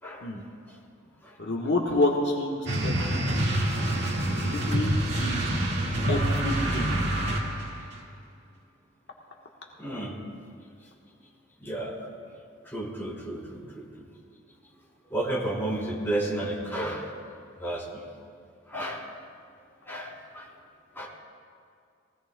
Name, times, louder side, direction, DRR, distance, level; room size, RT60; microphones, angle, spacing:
voice 1, 1.4-3.5 4.3-5.5 6.1-7.0, left 2 dB, 60° left, -1 dB, 1.3 m, -29 dB
sound 1, 2.7-7.8, right 1 dB, 60° right, 1.9 m, -27 dB
voice 2, 9.8-10.1 11.6-12.0 12.6-13.8 15.1-17.1 17.6-18.0 18.7-19.1 19.8-20.5 20.9-21.1, right 1 dB, 10° left, -5 dB, 2.9 m, -32 dB
22.5 x 17.0 x 2.3 m, 2.3 s
head